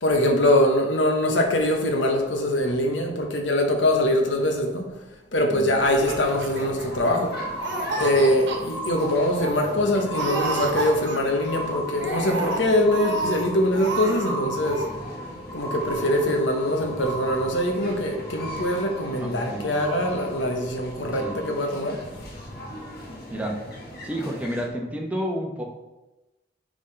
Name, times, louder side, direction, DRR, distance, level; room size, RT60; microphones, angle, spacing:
voice 1, 0.0-4.9 5.3-7.3 8.0-14.9 15.5-22.0, left 1 dB, 80° left, 2 dB, 1.1 m, -23 dB
voice 2, 5.5-5.8 19.2-19.8 21.1-21.4 23.3-23.6 24.0-25.6, equal, 10° right, 0 dB, 0.9 m, -30 dB
sound 1, 5.7-24.7, equal, 55° left, 1.3 m, -40 dB
Laughter, 5.9-7.3 7.6-8.6 9.0-9.1 9.3-9.7 10.1-11.5 11.9-13.4 13.7-14.3 14.6-14.9, right 3 dB, 70° right, 1.2 m, -30 dB
sound 2, 6.4-23.3 24.0-24.1, equal, 15° left, 0.6 m, -37 dB
9.7 x 3.9 x 3.3 m, 1.1 s
head